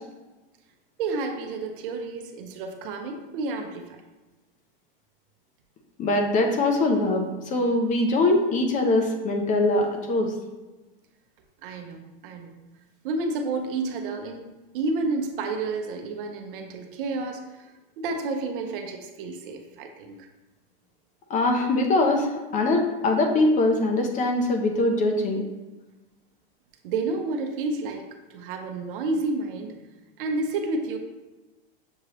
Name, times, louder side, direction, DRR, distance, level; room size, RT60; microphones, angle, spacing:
voice 1, 1.0-4.0 11.6-12.5 13.0-14.5 14.7-17.6 18.0-20.3 26.8-29.8 30.2-31.0, right 3 dB, 65° right, 5 dB, 0.7 m, -30 dB
voice 2, 6.0-10.4 21.3-25.4, left 2 dB, 25° left, 4 dB, 0.5 m, -22 dB
6.4 x 2.9 x 2.9 m, 1.1 s
supercardioid pair, 130°, 29 cm